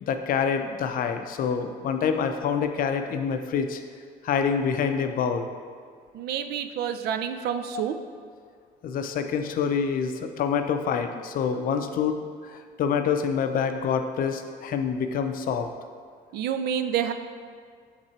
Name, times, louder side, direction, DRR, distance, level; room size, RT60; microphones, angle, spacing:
voice 1, 0.0-3.8 4.2-5.5 8.8-15.7, left 6 dB, 55° left, 7 dB, 0.5 m, -26 dB
voice 2, 6.1-8.0 16.3-17.1, right 9 dB, 70° right, 8 dB, 0.5 m, -28 dB
7.4 x 3.7 x 4.3 m, 2.1 s
cardioid pair, 110°, 17 cm